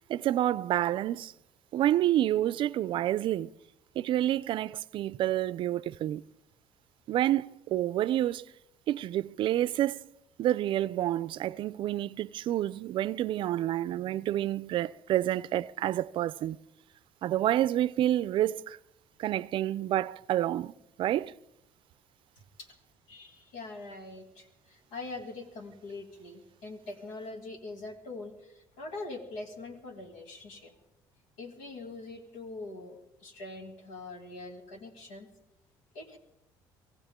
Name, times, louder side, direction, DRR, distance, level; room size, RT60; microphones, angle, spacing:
voice 1, 0.1-1.3 1.7-3.5 4.0-6.2 7.1-8.4 8.9-10.0 10.4-16.6 17.2-18.8 19.2-20.7 21.0-21.3, right 13 dB, 60° right, 0.5 m, -28 dB
voice 2, 23.1-30.8 31.4-35.3 35.9-36.2, left 2 dB, 90° left, 2.5 m, -43 dB
24.0 x 15.5 x 3.7 m
supercardioid pair, 85°, 10 cm